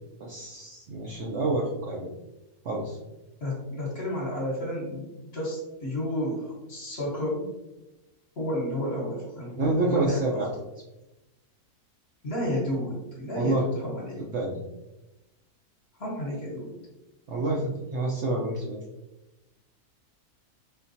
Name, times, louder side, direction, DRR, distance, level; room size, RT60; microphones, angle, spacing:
voice 1, 0.2-2.1 2.6-3.0 9.6-10.5 13.3-13.6 14.2-14.6 17.3-18.8, right 2 dB, 65° right, -2 dB, 0.7 m, -28 dB
voice 2, 3.4-7.5 8.4-10.4 12.2-14.2 16.0-16.7, left 1 dB, 45° left, -3 dB, 1.3 m, -31 dB
4.2 x 3.8 x 2.7 m, 1.0 s
omnidirectional pair, 1.6 m